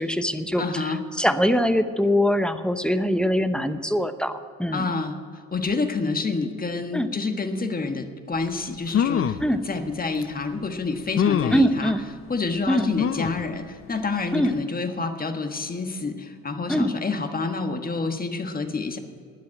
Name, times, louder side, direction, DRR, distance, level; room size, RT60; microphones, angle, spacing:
voice 1, 0.0-4.9 6.9-7.1 9.4-9.6 11.5-12.0 12.7-12.9 14.3-14.5 16.7-16.9, equal, 5° left, 9 dB, 0.8 m, -23 dB
voice 2, 0.6-1.0 4.7-5.2 5.5-9.4 9.7-11.9 12.3-19.0, left 3 dB, 30° left, 6 dB, 1.5 m, -28 dB
sound 1, 8.5-8.6 8.9-9.5 10.2-10.3 11.2-11.7 13.0-13.4 14.0-14.1 14.4-14.5, left 8 dB, 45° left, 0.6 m, -24 dB
12.5 x 9.4 x 8.8 m, 2.2 s
cardioid pair, 90°, 30 cm